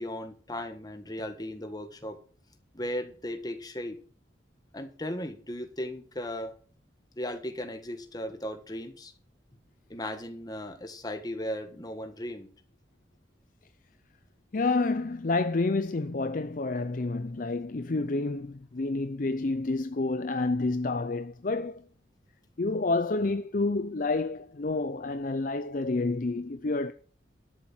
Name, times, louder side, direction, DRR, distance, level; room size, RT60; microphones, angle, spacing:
voice 1, 0.0-2.2 2.7-4.0 4.7-6.5 7.2-9.1 9.9-12.5, left 1 dB, 20° left, 1.5 m, -36 dB
voice 2, 14.5-21.8 22.6-26.9, left 3 dB, 45° left, 0.6 m, -29 dB
12.0 x 7.3 x 6.1 m
head